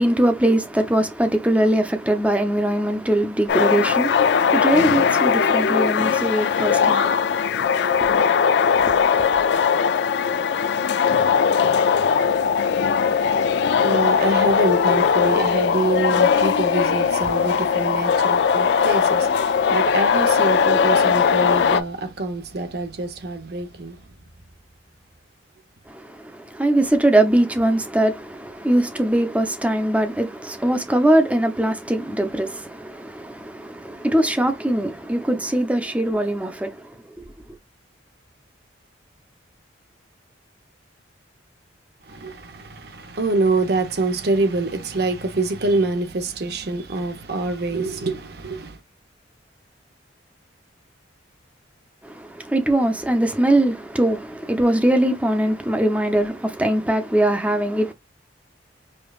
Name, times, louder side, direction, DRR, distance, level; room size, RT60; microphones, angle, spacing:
voice 1, 0.0-8.3 8.8-9.0 9.5-9.6 25.9-37.2 52.0-57.9, right 1 dB, 5° right, 0.6 m, -21 dB
sound 1, 3.5-21.8, left 6 dB, 60° left, 0.4 m, -19 dB
voice 2, 12.6-12.9 13.5-24.1 42.0-48.8, right 2 dB, 55° right, 0.8 m, -25 dB
5.1 x 2.3 x 2.4 m
head